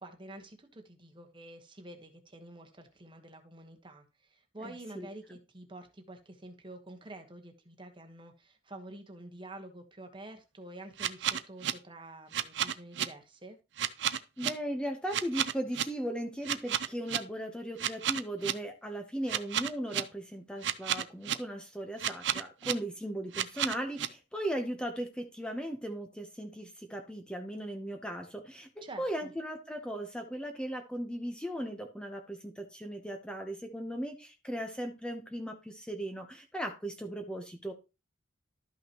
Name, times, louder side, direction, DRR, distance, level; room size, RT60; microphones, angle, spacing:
voice 1, 0.0-13.6 28.8-29.3, right 2 dB, 25° right, 5 dB, 1.2 m, -48 dB
sound 1, 11.0-11.7 12.3-13.0 13.8-14.5 15.1-15.8 16.4-17.2 17.8-18.5 19.3-20.0 20.6-21.3 22.0-22.7 23.3-24.1, right 10 dB, 60° right, 0.6 m, -31 dB
voice 2, 14.4-28.7 29.0-37.7, right 1 dB, 5° left, 4 dB, 0.8 m, -37 dB
12.5 x 5.7 x 3.0 m, 0.28 s
head